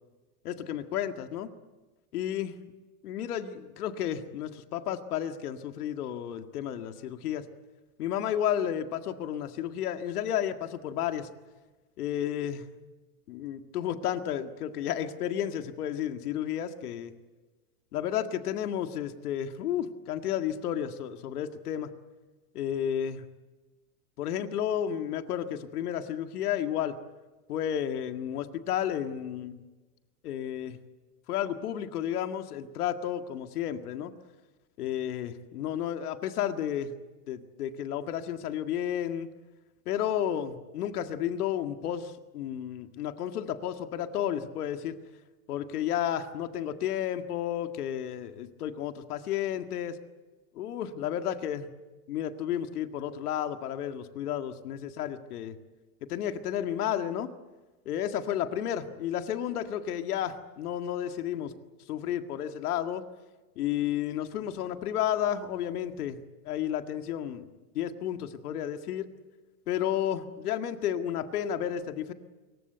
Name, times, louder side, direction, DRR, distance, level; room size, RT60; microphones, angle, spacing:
voice 1, 0.4-1.5 2.1-2.6 3.0-7.5 8.0-11.3 12.0-12.6 13.3-17.1 17.9-21.9 22.5-23.3 24.2-27.0 27.5-29.6 30.2-30.8 31.3-34.1 34.8-36.9 37.3-39.3 39.9-45.0 45.5-50.0 50.6-51.7 52.1-55.6 56.1-57.3 57.9-61.5 61.9-63.0 63.6-67.5 67.7-69.1 69.7-72.1, left 10 dB, 75° left, 7 dB, 2.0 m, -32 dB
25.5 x 23.0 x 8.1 m, 1.2 s
supercardioid pair, 165°, 45 cm